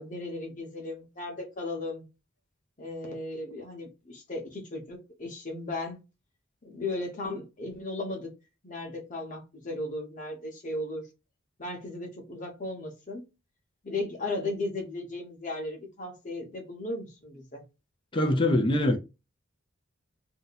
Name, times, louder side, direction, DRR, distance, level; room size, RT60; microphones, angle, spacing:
voice 1, 0.0-2.0 2.8-6.0 6.6-8.3 8.6-11.1 11.6-13.2 13.8-17.6, left 2 dB, 40° left, 1.0 m, -36 dB
voice 2, 18.1-19.0, left 1 dB, 25° left, 0.4 m, -23 dB
2.7 x 2.2 x 3.9 m
head